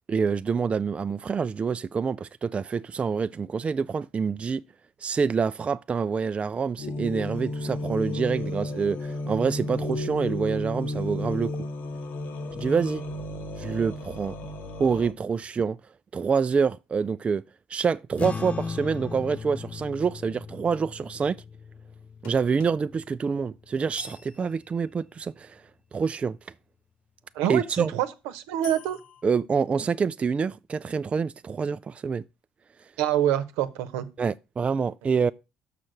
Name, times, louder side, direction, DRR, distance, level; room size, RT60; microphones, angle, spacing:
voice 1, 0.1-4.6 5.0-11.5 12.5-13.0 13.6-14.4 14.8-15.8 16.1-17.4 17.7-21.4 22.2-25.6 25.9-26.4 27.5-27.9 29.2-32.2 34.2-35.3, right 5 dB, 30° right, 0.3 m, -26 dB
sound 1, 6.8-15.1, left 1 dB, 60° left, 1.2 m, -33 dB
sound 2, 18.2-24.8, left 5 dB, 35° left, 0.5 m, -38 dB
sound 3, 22.2-25.2 28.6-29.2, left 8 dB, 85° left, 2.0 m, -48 dB
voice 2, 27.3-28.1 28.3-29.0 33.0-34.1, right 11 dB, 80° right, 0.9 m, -26 dB
6.3 x 5.9 x 6.5 m
supercardioid pair, 70°, 4 cm